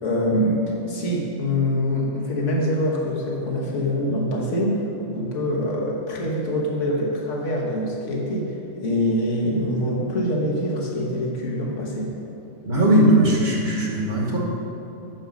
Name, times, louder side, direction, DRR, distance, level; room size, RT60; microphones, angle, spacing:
voice 1, 0.0-4.8 5.1-12.1, left 1 dB, 85° left, -3 dB, 1.5 m, -24 dB
voice 2, 12.6-14.4, right 1 dB, 40° right, -3 dB, 1.2 m, -18 dB
6.2 x 5.2 x 6.3 m, 2.9 s
omnidirectional pair, 1.2 m